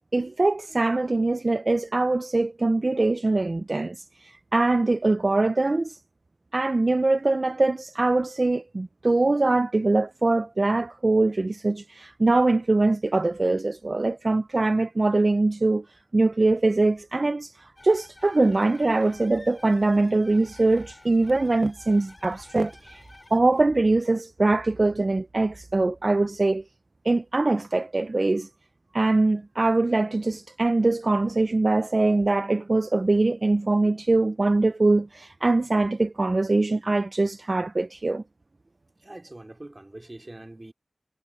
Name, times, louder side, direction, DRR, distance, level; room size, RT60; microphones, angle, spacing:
voice 1, 0.1-6.0 6.5-15.8 16.1-23.0 23.3-26.6 27.0-28.5 28.9-38.2, right 2 dB, 45° right, 0.5 m, -23 dB
sound 1, 17.8-23.4, left 2 dB, 35° left, 7.0 m, -51 dB
voice 2, 39.0-40.7, right 1 dB, 30° right, 2.8 m, -43 dB
wide cardioid pair, 70°, 0 cm